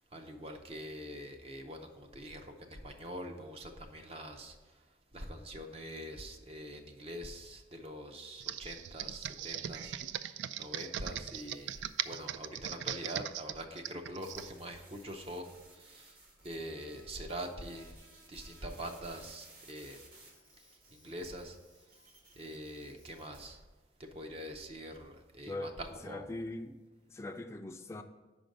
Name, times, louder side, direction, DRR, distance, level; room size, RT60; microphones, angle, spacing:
voice 1, 0.1-4.8 5.1-16.2 16.4-18.0 18.3-20.0 20.6-21.6 22.3-23.6 24.0-26.3, equal, 30° right, 5 dB, 0.6 m, -44 dB
Computer keyboard, 8.4-14.5, right 10 dB, 80° right, 0.3 m, -39 dB
sound 1, 11.3-12.4 14.2-23.4, right 2 dB, 55° right, 1.8 m, -59 dB
voice 2, 25.5-25.8 26.0-26.8 27.1-28.0, left 2 dB, 15° left, 5 dB, 0.4 m, -41 dB
5.2 x 5.1 x 6.4 m, 1.2 s
head